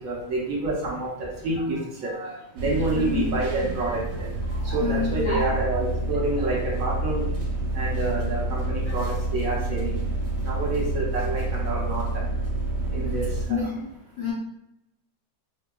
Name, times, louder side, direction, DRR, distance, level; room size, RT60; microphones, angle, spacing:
voice 1, 0.0-1.8 2.0-2.1 2.5-4.0 4.7-7.3 7.7-10.0 10.4-12.1 12.9-13.6, right 2 dB, 60° right, -4 dB, 1.0 m, -28 dB
voice 2, 2.0-2.4 2.8-3.2 4.5-5.8 6.4-6.5 8.9-9.0 13.5-13.9 14.2-14.3, left 5 dB, 65° left, -4 dB, 0.8 m, -30 dB
sound 1, 2.6-13.5, right 2 dB, 90° right, 1.4 m, -28 dB
5.3 x 2.2 x 2.2 m, 0.84 s
omnidirectional pair, 1.9 m